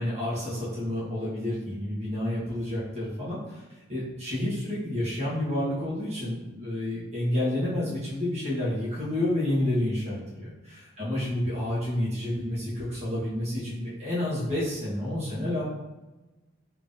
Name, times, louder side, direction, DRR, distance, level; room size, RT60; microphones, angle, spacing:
voice 1, 0.0-3.6 3.9-15.6, left 1 dB, 35° right, -8 dB, 1.3 m, -29 dB
3.7 x 3.2 x 2.6 m, 1.1 s
head